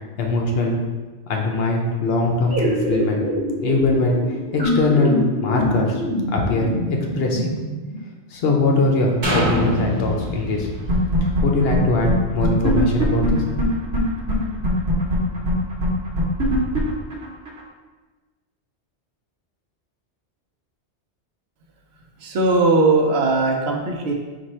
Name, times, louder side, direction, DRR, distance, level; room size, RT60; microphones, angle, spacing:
voice 1, 0.2-0.7 1.3-3.2 3.6-4.2 4.5-6.0 6.3-6.8 7.2-7.4 8.3-10.7 11.4-13.4, left 2 dB, 65° left, 1 dB, 0.9 m, -21 dB
sound 1, 2.5-8.0, left 1 dB, 5° right, 1.1 m, -25 dB
sound 2, 9.2-13.0 13.5-13.6, equal, 45° right, 1.1 m, -26 dB
sound 3, 10.9-11.4 11.7-11.8 12.1-12.2 12.4-14.0 14.3-14.4 14.6-17.6, right 1 dB, 85° right, 1.2 m, -21 dB
voice 2, 22.2-24.1, right 3 dB, 70° right, 0 dB, 0.9 m, -19 dB
4.4 x 2.5 x 4.2 m, 1.3 s
omnidirectional pair, 1.2 m